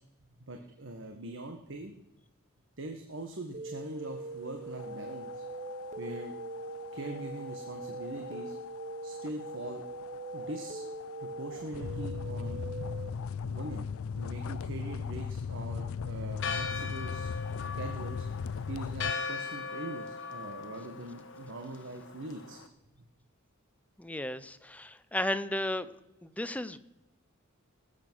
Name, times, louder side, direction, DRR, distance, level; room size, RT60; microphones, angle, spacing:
voice 1, 0.5-1.9 2.8-5.4 6.0-6.3 6.9-8.5 9.0-9.8 10.3-10.9 11.2-12.6 13.4-13.9 14.1-17.3 17.7-18.3 18.7-22.6, right 2 dB, 60° right, 4 dB, 1.4 m, -42 dB
sound 1, 3.5-13.1, right 3 dB, 35° right, 0.8 m, -42 dB
sound 2, 4.7-19.1, left 6 dB, 85° left, 0.4 m, -39 dB
Church bell, 16.4-22.7, left 5 dB, 60° left, 1.3 m, -39 dB
voice 2, 24.0-25.9 26.2-26.8, left 1 dB, 5° left, 12 dB, 0.7 m, -34 dB
19.5 x 8.2 x 6.2 m, 0.93 s
head